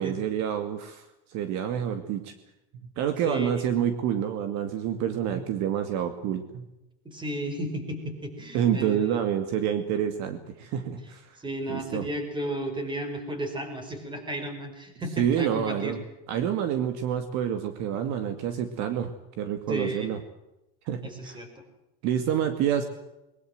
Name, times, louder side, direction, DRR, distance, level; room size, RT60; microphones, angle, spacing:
voice 1, 0.0-2.3 2.8-6.7 8.5-11.4 11.7-12.0 15.2-16.0 16.3-20.2 20.9-21.4 22.0-22.8, right 9 dB, 50° right, 8 dB, 2.3 m, -28 dB
voice 2, 3.2-3.6 7.0-9.2 11.4-16.0 19.7-20.1 21.0-21.5, right 1 dB, 15° right, 7 dB, 5.1 m, -33 dB
22.0 x 21.0 x 7.8 m, 0.92 s
supercardioid pair, 150°, 35 cm